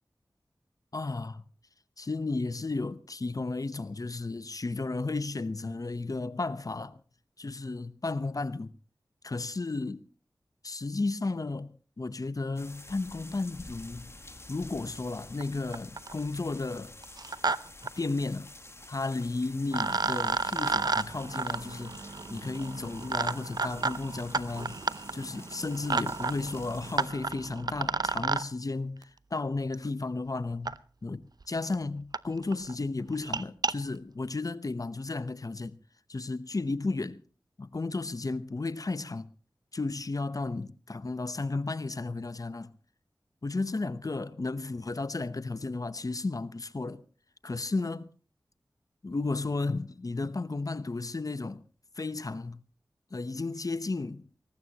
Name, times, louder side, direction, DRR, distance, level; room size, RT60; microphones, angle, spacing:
voice 1, 0.9-1.4 2.0-7.0 7.4-8.7 9.2-10.0 10.6-14.1 14.5-16.9 18.0-18.5 18.9-24.8 25.1-30.8 31.0-35.8 36.1-37.2 37.6-39.3 39.7-42.7 43.4-47.0 47.4-48.1 49.0-51.6 52.0-52.6 53.1-54.3, left 3 dB, 50° left, 0.9 m, -33 dB
sound 1, 12.6-27.1, left 2 dB, 35° left, 1.7 m, -49 dB
sound 2, 15.4-15.5 15.7-16.2 17.0-17.6 17.8-17.9 19.2-19.3 19.7-28.4 29.7-29.8 30.6-30.7 31.4-31.5 31.7-31.8 32.1-32.2 32.5-32.7 33.1-33.7, right 4 dB, 60° right, 0.7 m, -32 dB
20.5 x 19.0 x 3.0 m
cardioid pair, 45°, 8 cm